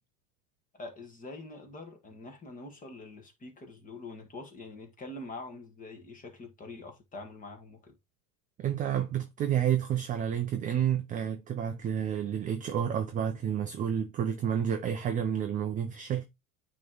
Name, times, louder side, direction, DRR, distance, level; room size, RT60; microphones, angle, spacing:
voice 1, 0.7-8.0, left 2 dB, 20° left, 1.5 m, -45 dB
voice 2, 8.6-16.2, right 9 dB, 20° right, 0.4 m, -30 dB
9.1 x 3.2 x 3.7 m
supercardioid pair, 135°, 43 cm